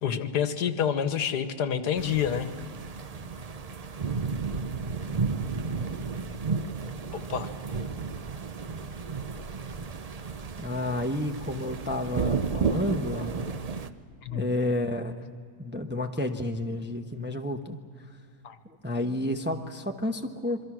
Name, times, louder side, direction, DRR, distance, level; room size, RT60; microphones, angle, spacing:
voice 1, 0.0-2.5 7.1-7.5 14.2-14.5 18.4-18.6, left 8 dB, 85° left, 10 dB, 1.7 m, -28 dB
sound 1, 2.0-13.9, right 5 dB, 50° right, 0.4 m, -32 dB
voice 2, 10.6-13.5 14.3-15.3 15.6-17.8 18.6-20.6, left 1 dB, 10° right, 4 dB, 0.8 m, -31 dB
27.0 x 23.5 x 6.2 m, 2.2 s
omnidirectional pair, 1.7 m